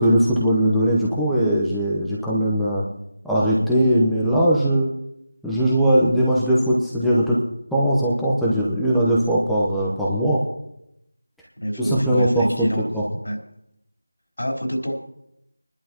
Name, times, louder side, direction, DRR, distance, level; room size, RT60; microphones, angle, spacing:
voice 1, 0.0-2.8 3.2-4.9 5.4-7.4 7.7-10.4 11.8-12.7 12.9-13.0, right 1 dB, ahead, -9 dB, 1.0 m, -20 dB
voice 2, 11.6-12.8 13.2-13.4 14.4-14.9, equal, 75° left, 0 dB, 4.0 m, -26 dB
24.0 x 11.0 x 3.0 m, 0.81 s
figure-of-eight pair, 170°, 0 cm